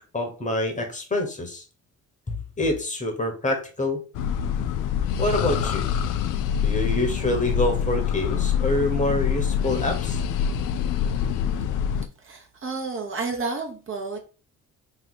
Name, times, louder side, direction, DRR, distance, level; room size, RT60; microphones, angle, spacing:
voice 1, 0.1-1.6 2.3-4.0 5.2-5.8 6.6-10.2, left 1 dB, 25° left, 1.2 m, -26 dB
sound 1, 4.1-12.1, left 8 dB, 85° left, 0.5 m, -25 dB
voice 2, 12.2-14.2, right 4 dB, 45° right, 1.0 m, -31 dB
3.0 x 2.8 x 4.2 m
cardioid pair, 90°, 30 cm